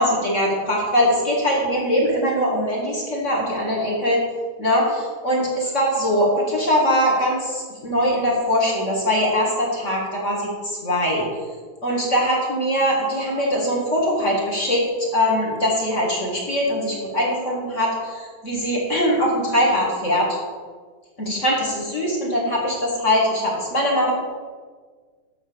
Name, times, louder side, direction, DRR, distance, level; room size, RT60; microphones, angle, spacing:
voice 1, 0.0-4.2 4.6-11.3 11.8-20.3 21.2-24.1, equal, 25° left, -3 dB, 2.3 m, -22 dB
12.0 x 5.0 x 7.1 m, 1.5 s
omnidirectional pair, 3.4 m